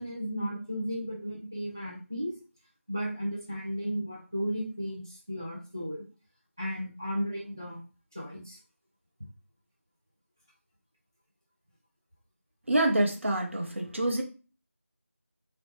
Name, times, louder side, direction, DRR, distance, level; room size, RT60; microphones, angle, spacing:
voice 1, 0.0-2.3 2.9-6.0 6.6-7.8 8.1-8.6, equal, 15° right, 0.4 m, -34 dB
voice 2, 12.7-14.2, right 1 dB, 60° right, 0.8 m, -26 dB
3.0 x 2.1 x 3.0 m
figure-of-eight pair, 170°, 8 cm